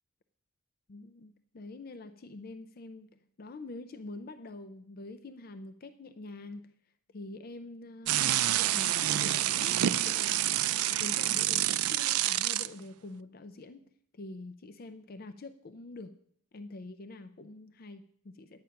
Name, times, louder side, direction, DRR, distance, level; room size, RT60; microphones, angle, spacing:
voice 1, 0.9-6.7 7.1-10.5 10.9-16.1 16.5-18.6, left 2 dB, 45° left, 10 dB, 0.4 m, -46 dB
sound 1, 8.1-12.7, right 13 dB, 85° right, 0.4 m, -28 dB
10.5 x 8.7 x 5.7 m, 0.63 s
head